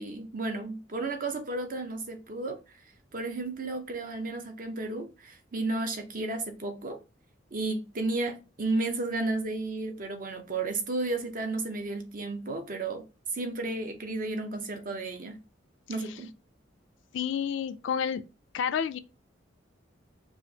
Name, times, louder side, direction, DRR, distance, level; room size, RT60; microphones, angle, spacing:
voice 1, 0.0-2.6 3.1-7.0 7.5-13.0 13.3-15.4 15.9-16.3, right 2 dB, 45° right, 0.7 m, -33 dB
voice 2, 17.1-18.2 18.5-19.0, left 7 dB, 70° left, 0.3 m, -29 dB
4.9 x 2.5 x 2.7 m
head